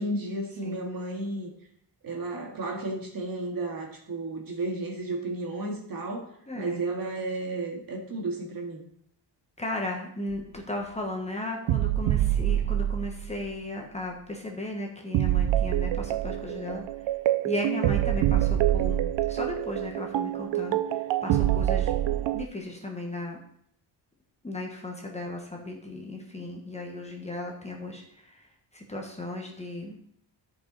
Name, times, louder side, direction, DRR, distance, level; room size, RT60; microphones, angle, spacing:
voice 1, 0.0-1.5 2.0-6.3 6.6-8.8 21.3-21.4, right 2 dB, 50° right, 1 dB, 2.1 m, -33 dB
voice 2, 6.5-6.8 9.6-16.8 17.4-19.0 19.3-20.8 21.2-23.4 24.4-28.0 28.7-30.0, left 1 dB, 15° left, 0 dB, 1.3 m, -35 dB
sound 1, 10.3-10.4 11.7-13.5 15.1-22.4, right 13 dB, 85° right, 0.6 m, -26 dB
12.5 x 5.4 x 4.0 m, 0.69 s
wide cardioid pair, 145°, 44 cm